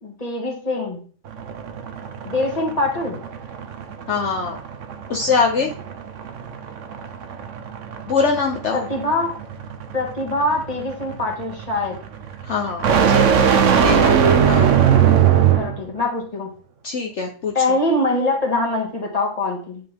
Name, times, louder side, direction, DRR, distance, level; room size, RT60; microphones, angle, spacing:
voice 1, 0.0-1.0 2.2-3.2 8.7-9.3 9.9-12.0 14.0-14.2 15.6-16.5 17.5-19.8, left 2 dB, 25° left, 0 dB, 2.1 m, -23 dB
sound 1, 1.3-15.8, right 8 dB, 65° right, 1.2 m, -20 dB
voice 2, 4.1-4.6 5.1-5.7 8.1-8.9 12.4-13.5 13.8-14.2 14.5-14.7 16.8-17.8, left 5 dB, 60° left, 1 dB, 1.3 m, -23 dB
9.3 x 5.6 x 3.6 m, 0.41 s
omnidirectional pair, 1.4 m